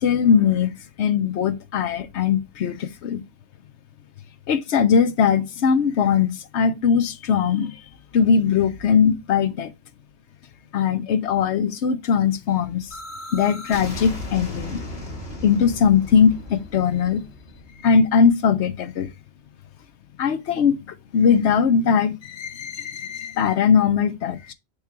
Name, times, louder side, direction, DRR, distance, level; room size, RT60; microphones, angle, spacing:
voice 1, 0.0-3.2 4.5-7.8 8.1-9.7 10.7-12.9 13.3-14.8 15.4-17.2 17.8-19.1 20.2-24.5, left 6 dB, 85° left, 1.0 m, -20 dB
sound 1, 12.9-18.6, left 1 dB, 65° left, 2.0 m, -36 dB
6.7 x 3.2 x 4.6 m
omnidirectional pair, 1.1 m